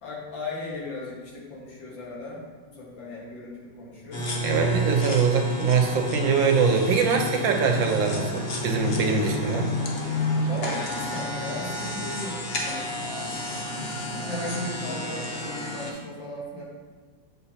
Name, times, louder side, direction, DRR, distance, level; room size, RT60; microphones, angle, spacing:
voice 1, 0.0-4.2 10.5-12.9 14.2-16.6, left 2 dB, 75° left, -5 dB, 2.4 m, -36 dB
sound 1, 4.1-15.9, equal, 45° left, 0.8 m, -30 dB
voice 2, 4.4-9.7, right 5 dB, 85° right, 3 dB, 1.7 m, -23 dB
7.9 x 6.5 x 2.8 m, 1.5 s
omnidirectional pair, 2.0 m